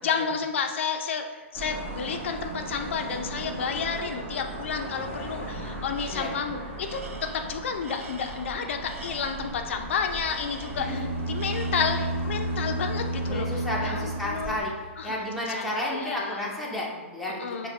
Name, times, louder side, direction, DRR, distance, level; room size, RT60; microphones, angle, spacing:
voice 1, 0.0-13.5 13.8-14.0 14.2-14.6 15.0-15.3 15.5-16.5 17.4-17.7, left 6 dB, 65° left, 5 dB, 0.4 m, -31 dB
sound 1, 1.5-14.6, right 1 dB, 35° right, 1.1 m, -38 dB
Tools, 5.9-6.5 6.8-9.6 10.2-11.0 11.3-12.2, right 4 dB, 85° right, 0.5 m, -46 dB
sound 2, 10.6-14.9, right 1 dB, 70° right, 1.5 m, -31 dB
voice 2, 13.3-14.7 15.0-17.7, left 1 dB, ahead, -5 dB, 0.6 m, -32 dB
5.6 x 2.2 x 3.1 m, 1.4 s
hypercardioid pair, 150°, 7 cm